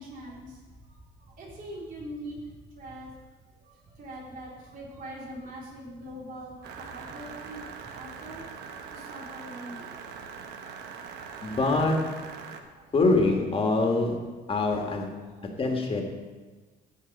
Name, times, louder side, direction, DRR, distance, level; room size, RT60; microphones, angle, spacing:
voice 1, 0.0-3.1 3.6-7.7 7.9-8.5 8.9-10.7 12.7-12.9 15.2-15.5, right 1 dB, 55° right, -5 dB, 3.4 m, -43 dB
sound 1, 6.6-12.6, right 6 dB, 80° right, 1.1 m, -42 dB
voice 2, 11.4-11.9 12.9-14.1 14.5-15.0 15.6-16.0, left 3 dB, 35° left, 2 dB, 1.7 m, -24 dB
16.0 x 5.3 x 5.3 m, 1.3 s
cardioid pair, 110°, 17 cm